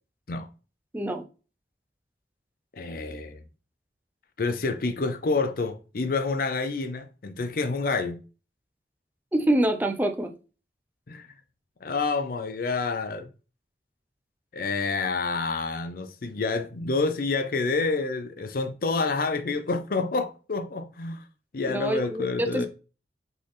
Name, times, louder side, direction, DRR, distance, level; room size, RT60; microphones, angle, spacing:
voice 1, 2.7-3.4 4.4-8.2 11.1-11.3 11.8-13.3 14.5-21.2 21.5-22.7, left 3 dB, 50° left, 0.5 m, -28 dB
voice 2, 9.3-10.3 21.7-22.7, right 1 dB, 10° right, 0.5 m, -25 dB
4.0 x 3.9 x 3.3 m
head